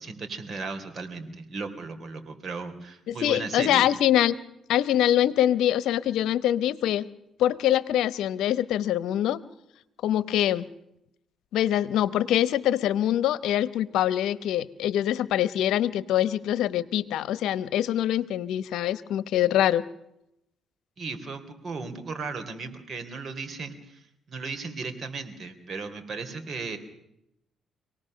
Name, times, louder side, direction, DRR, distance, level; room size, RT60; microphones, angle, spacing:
voice 1, 0.0-3.9 21.0-24.0 24.3-26.8, right 4 dB, 45° right, 7 dB, 3.4 m, -36 dB
voice 2, 3.1-4.4 4.7-7.1 7.4-9.4 10.0-10.7 11.5-19.8, left 12 dB, 85° left, 17 dB, 0.9 m, -24 dB
26.0 x 18.5 x 6.5 m, 0.82 s
cardioid pair, 90°, 0 cm